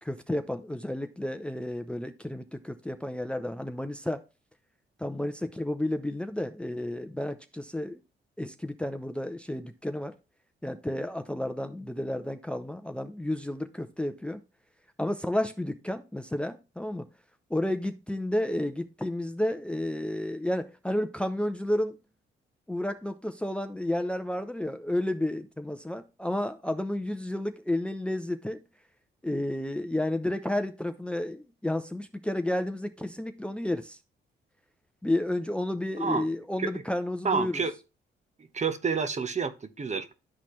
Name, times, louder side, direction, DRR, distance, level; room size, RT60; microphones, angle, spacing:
voice 1, 0.0-4.2 5.0-8.0 8.4-10.1 10.6-14.4 15.0-17.1 17.5-22.0 22.7-28.6 29.2-34.0 35.0-37.6, left 1 dB, 5° left, 0.6 m, -31 dB
voice 2, 37.2-37.7 38.5-40.1, right 5 dB, 35° right, 0.9 m, -29 dB
12.0 x 4.1 x 3.1 m
supercardioid pair, 65°, 20 cm